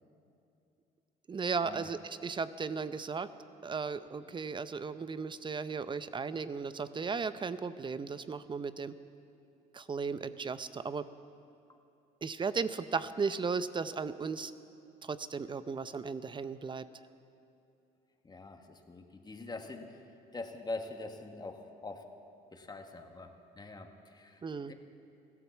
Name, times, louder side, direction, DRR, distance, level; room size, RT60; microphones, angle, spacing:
voice 1, 1.3-3.3 3.6-8.9 9.7-11.0 12.2-14.5 15.0-16.8 24.4-24.7, right 5 dB, 30° right, 13 dB, 0.7 m, -36 dB
voice 2, 18.2-20.0 20.3-22.1 22.5-24.7, left 2 dB, 25° left, 4 dB, 1.7 m, -44 dB
15.5 x 12.0 x 7.3 m, 2.7 s
supercardioid pair, 80°, 17 cm